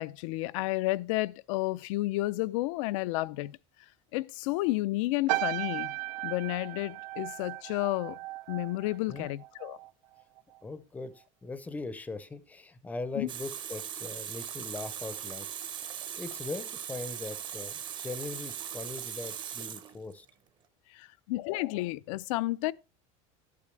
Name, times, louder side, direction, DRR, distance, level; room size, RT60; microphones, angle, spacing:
voice 1, 0.0-3.6 4.1-5.9 6.2-8.2 8.5-9.8 13.2-13.3 20.9-22.7, left 18 dB, 75° left, 0.5 m, -31 dB
sound 1, 5.3-9.9 10.2-10.6, right 19 dB, 85° right, 0.6 m, -36 dB
voice 2, 10.6-15.5 16.2-20.3, left 3 dB, 10° left, 0.6 m, -40 dB
Water tap faucet, 13.3-20.3, right 9 dB, 25° right, 0.8 m, -39 dB
11.5 x 8.5 x 3.3 m
cardioid pair, 170°, 17 cm